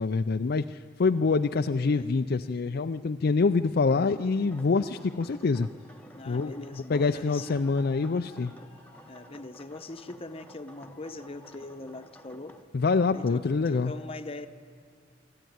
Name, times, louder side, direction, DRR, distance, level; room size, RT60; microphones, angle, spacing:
voice 1, 0.0-5.7 6.3-6.6 6.9-8.5 12.7-13.9, left 4 dB, 55° left, 7 dB, 0.4 m, -25 dB
sound 1, 4.3-12.6, equal, 10° left, 1.0 m, -53 dB
voice 2, 6.1-7.6 9.1-12.6 13.1-14.5, left 2 dB, 30° left, 9 dB, 0.9 m, -41 dB
sound 2, 7.7-9.5 10.8-11.8, right 1 dB, 60° right, 5.1 m, -55 dB
25.0 x 14.0 x 9.3 m, 2.1 s
head